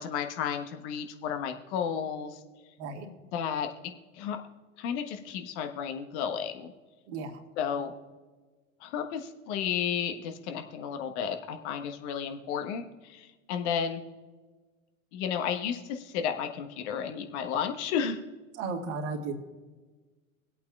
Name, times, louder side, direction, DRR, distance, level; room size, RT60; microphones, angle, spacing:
voice 1, 0.0-2.4 3.3-4.4 4.8-6.7 7.6-7.9 8.8-14.0 15.1-18.2, left 7 dB, 55° left, 6 dB, 1.4 m, -33 dB
voice 2, 7.1-7.4 18.6-19.3, right 4 dB, 55° right, 1 dB, 2.0 m, -34 dB
24.5 x 8.4 x 2.4 m, 1.3 s
figure-of-eight pair, 75°, 40 cm